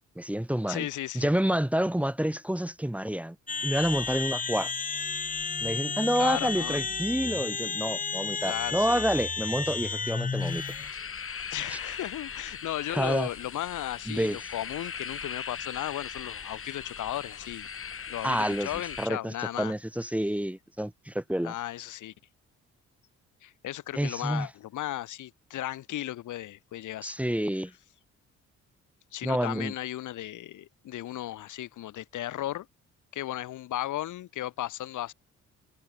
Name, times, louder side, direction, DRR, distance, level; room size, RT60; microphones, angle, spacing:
voice 1, 0.2-0.9 1.1-3.4 3.6-4.7 5.6-10.6 11.7-11.8 12.9-13.3 14.1-14.4 18.2-18.7 19.0-21.5 23.9-24.5 27.0-27.7 29.2-29.7, equal, 5° right, 2.6 m, -28 dB
voice 2, 0.7-1.3 6.2-6.8 8.4-9.0 11.5-17.7 18.1-19.7 21.4-22.1 23.4-27.1 29.1-32.7 33.1-35.1, left 13 dB, 80° left, 4.0 m, -35 dB
sound 1, 3.5-10.9, left 5 dB, 25° left, 1.5 m, -32 dB
sound 2, 10.4-19.1, left 6 dB, 45° left, 7.5 m, -39 dB
cardioid pair, 90°, 30 cm